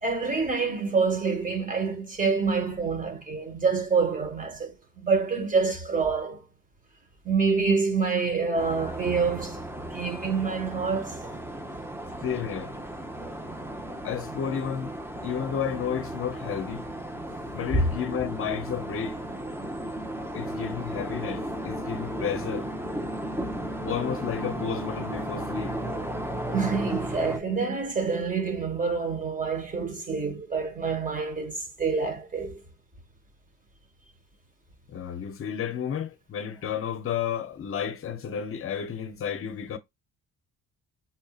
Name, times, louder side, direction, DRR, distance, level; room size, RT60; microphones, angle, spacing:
voice 1, 0.0-6.4 7.2-9.6 9.9-11.2 17.7-17.8 26.5-32.6, right 4 dB, 25° right, 1.5 m, -27 dB
sound 1, 8.6-27.4, right 1 dB, 5° right, 0.7 m, -35 dB
voice 2, 12.2-12.7 14.0-16.9 17.5-19.2 20.3-22.7 23.9-25.8 34.9-39.8, left 8 dB, 40° left, 0.7 m, -32 dB
5.5 x 2.7 x 2.4 m
cardioid pair, 145°, 33 cm